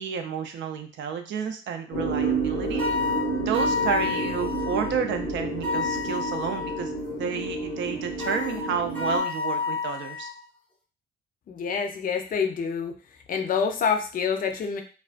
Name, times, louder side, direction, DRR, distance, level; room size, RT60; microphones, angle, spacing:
voice 1, 0.0-2.8 3.4-10.3, right 7 dB, 70° right, 6 dB, 0.5 m, -31 dB
sound 1, 1.9-9.2, right 2 dB, 90° left, 0.7 m, -30 dB
sound 2, 2.8-4.9 5.6-6.9 8.2-10.4, left 4 dB, 10° left, 0.7 m, -29 dB
voice 2, 11.5-12.9 13.3-14.8, left 6 dB, 45° left, 4 dB, 0.5 m, -27 dB
2.3 x 2.2 x 2.4 m, 0.37 s
cardioid pair, 90°, 20 cm